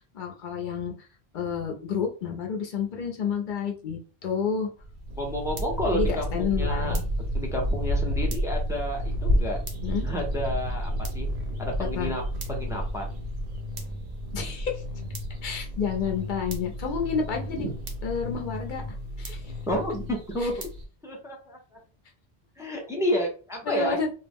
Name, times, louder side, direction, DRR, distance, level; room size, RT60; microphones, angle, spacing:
voice 1, 0.1-1.1 1.3-4.7 5.9-7.0 9.8-10.1 11.9-12.1 14.3-14.8 15.4-17.6 18.0-18.8 19.2-19.4 20.4-20.5 23.7-24.1, left 6 dB, 55° left, 2 dB, 0.6 m, -30 dB
sound 1, 4.8-20.8, equal, 85° right, 1.0 m, -32 dB
sound 2, 5.1-20.1, left 1 dB, 50° right, 0.7 m, -37 dB
voice 2, 5.2-7.0 7.3-9.6 10.0-11.3 11.6-12.2 12.5-13.2 17.6-17.7 19.7-20.5 21.0-21.6 22.6-24.0, equal, 5° right, 0 dB, 0.4 m, -30 dB
2.3 x 2.0 x 3.4 m, 0.37 s
omnidirectional pair, 1.1 m